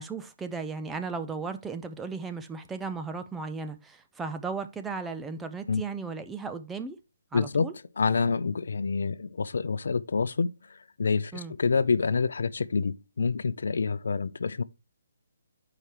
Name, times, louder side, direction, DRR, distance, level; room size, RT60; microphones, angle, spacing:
voice 1, 0.0-7.0 7.3-7.7 11.3-11.5, right 4 dB, 5° right, 0.5 m, -36 dB
voice 2, 7.3-7.7 8.0-11.3 11.6-14.6, left 5 dB, 75° left, 0.5 m, -27 dB
6.5 x 4.9 x 4.3 m
hypercardioid pair, 165°, 0 cm